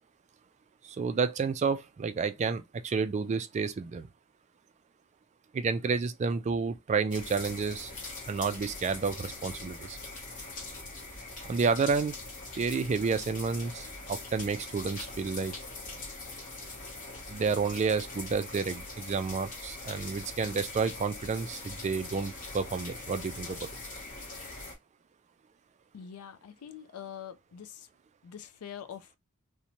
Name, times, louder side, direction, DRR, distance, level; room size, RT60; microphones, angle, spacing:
voice 1, 0.8-4.1 5.5-7.9 8.3-10.0 11.4-12.1 12.6-15.6 17.3-23.7, right 5 dB, 30° right, 0.3 m, -30 dB
sound 1, 7.1-24.8, left 3 dB, 40° left, 0.8 m, -42 dB
voice 2, 25.9-27.9 28.2-29.2, left 8 dB, 85° left, 0.4 m, -44 dB
2.6 x 2.1 x 2.9 m
head